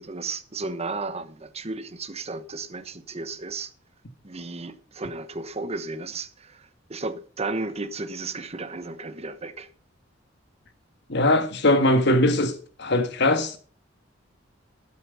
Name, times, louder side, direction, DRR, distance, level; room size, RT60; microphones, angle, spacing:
voice 1, 0.0-3.7 4.2-9.7, right 3 dB, 35° right, 1.1 m, -34 dB
voice 2, 11.1-13.6, left 1 dB, 60° left, 1.7 m, -21 dB
12.0 x 7.8 x 5.6 m
head